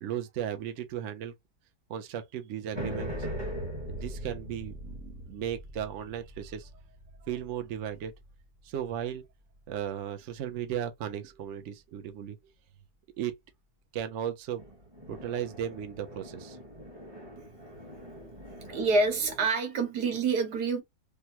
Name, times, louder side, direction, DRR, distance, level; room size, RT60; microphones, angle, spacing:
voice 1, 0.0-1.3 1.9-3.1 3.9-6.7 7.2-8.1 8.6-9.2 9.7-12.4 13.2-13.3 13.9-14.6 15.1-16.6, right 10 dB, 60° right, 0.8 m, -36 dB
sound 1, 2.7-9.2 14.6-19.5, right 1 dB, 20° right, 0.9 m, -41 dB
voice 2, 18.7-20.8, right 3 dB, 85° right, 1.6 m, -27 dB
3.3 x 2.2 x 2.8 m
omnidirectional pair, 1.6 m